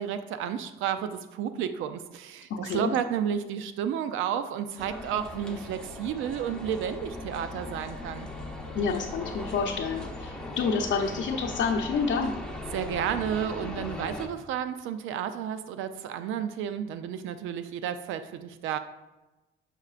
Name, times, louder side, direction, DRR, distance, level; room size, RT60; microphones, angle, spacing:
voice 1, 0.0-8.3 12.7-18.8, right 9 dB, 90° right, 10 dB, 0.4 m, -32 dB
voice 2, 2.5-2.9 8.7-12.3, left 5 dB, 65° left, 0 dB, 0.7 m, -28 dB
sound 1, 4.8-14.3, left 2 dB, 5° left, 0.8 m, -39 dB
sound 2, 5.1-11.6, left 1 dB, 65° right, 1.2 m, -48 dB
6.5 x 6.5 x 2.4 m, 1.1 s
cardioid pair, 90°, 20 cm